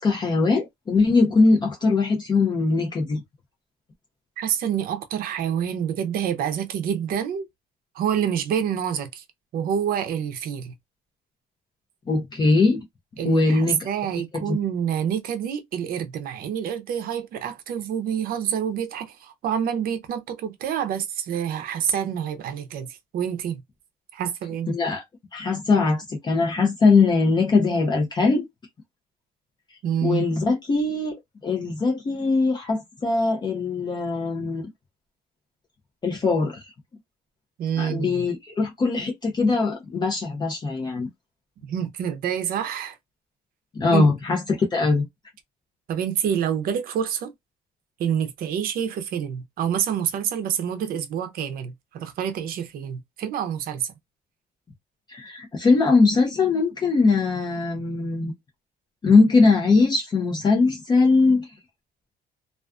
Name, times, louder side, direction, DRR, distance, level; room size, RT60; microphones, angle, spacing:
voice 1, 0.0-3.2 12.1-12.8 13.2-13.8 14.3-14.6 24.7-25.0 25.3-28.5 30.0-31.2 31.4-34.7 36.0-36.7 37.8-41.1 43.7-44.4 44.7-45.0 55.1-58.3 59.0-61.5, left 3 dB, 25° left, 0.6 m, -21 dB
voice 2, 4.4-7.5 7.9-9.2 9.5-10.7 13.2-23.6 24.1-24.7 29.8-30.3 37.6-38.2 41.7-43.0 43.9-44.1 45.9-47.3 48.0-53.9, right 8 dB, 60° right, 0.6 m, -27 dB
2.4 x 2.4 x 2.3 m
cardioid pair, 160°, 17 cm